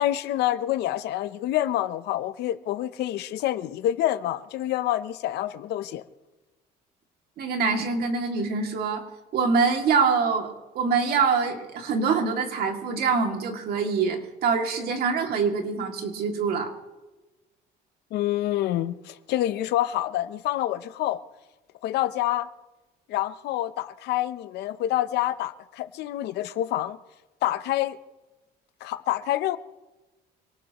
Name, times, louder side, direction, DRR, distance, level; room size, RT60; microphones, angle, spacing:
voice 1, 0.0-6.0 18.1-21.2 21.8-22.5 23.1-27.0 27.4-28.0 28.8-29.6, left 13 dB, 80° left, 0.8 m, -27 dB
voice 2, 7.4-9.0 9.3-16.7, right 5 dB, 65° right, 2.5 m, -25 dB
25.5 x 18.5 x 3.1 m
cardioid pair, 110°, 17 cm